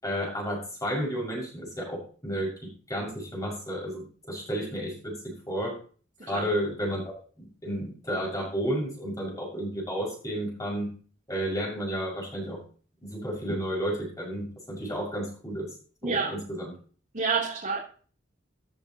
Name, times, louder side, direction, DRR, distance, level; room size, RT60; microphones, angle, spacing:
voice 1, 0.0-5.8 6.2-11.0 11.3-12.6 13.0-15.7 16.0-16.7, equal, 20° left, -2 dB, 6.2 m, -32 dB
voice 2, 16.0-16.4 17.1-17.8, right 5 dB, 40° right, -6 dB, 3.4 m, -28 dB
13.5 x 11.5 x 3.0 m, 0.41 s
head